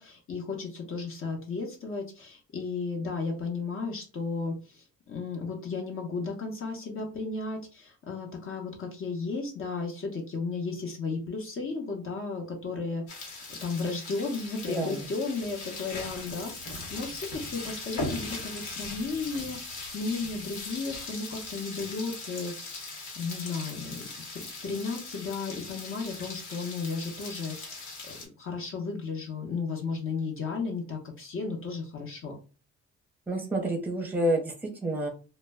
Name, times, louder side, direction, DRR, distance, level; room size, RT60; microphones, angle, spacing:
voice 1, 0.0-22.9 23.2-24.1 24.3-32.3, left 4 dB, 45° left, 1 dB, 0.7 m, -34 dB
sound 1, 13.1-28.2, left 3 dB, 90° left, 1.1 m, -39 dB
voice 2, 14.7-15.1 33.3-35.1, right 1 dB, 5° right, 2 dB, 0.7 m, -29 dB
2.1 x 2.1 x 3.4 m, 0.35 s
cardioid pair, 90°, 30 cm